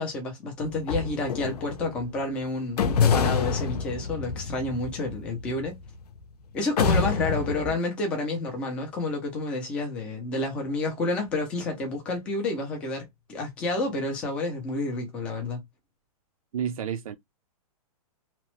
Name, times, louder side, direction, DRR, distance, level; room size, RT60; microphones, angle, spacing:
voice 1, 0.0-5.8 6.5-15.6, left 2 dB, 5° left, 0.3 m, -30 dB
sound 1, 0.6-2.0 2.8-6.2 6.8-7.7, left 6 dB, 85° left, 0.6 m, -27 dB
voice 2, 16.5-17.2, right 8 dB, 65° right, 0.5 m, -30 dB
2.9 x 2.0 x 2.9 m
hypercardioid pair, 175°, 19 cm